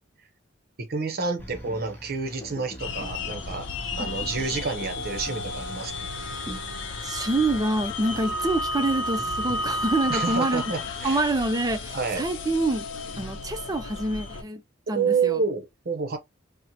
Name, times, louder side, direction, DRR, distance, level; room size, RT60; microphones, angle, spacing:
voice 1, 0.8-3.7 4.0-5.9 10.1-11.2 11.9-12.2 14.9-16.2, right 5 dB, 50° right, 0.8 m, -29 dB
sound 1, 1.4-8.3 8.9-9.0, equal, 10° left, 0.8 m, -43 dB
sound 2, 2.8-14.4, left 2 dB, 70° left, 0.6 m, -32 dB
voice 2, 7.0-10.6 11.0-12.9 13.2-14.6 14.9-15.4, right 2 dB, 20° right, 0.5 m, -26 dB
4.3 x 2.1 x 2.7 m
head